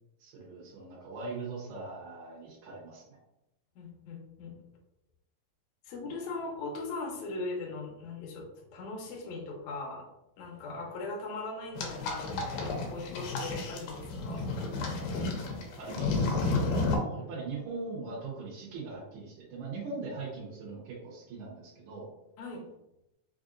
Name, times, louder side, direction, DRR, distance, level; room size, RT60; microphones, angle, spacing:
voice 1, 0.2-3.2 15.8-22.1, right 3 dB, 70° right, -7 dB, 2.2 m, -41 dB
voice 2, 3.8-4.6 5.9-8.4 8.7-10.0 10.4-14.4 22.4-22.6, left 3 dB, 70° left, -1 dB, 1.8 m, -39 dB
sound 1, 11.8-17.0, left 3 dB, 85° left, 2.4 m, -32 dB
5.5 x 2.5 x 2.5 m, 0.89 s
omnidirectional pair, 3.9 m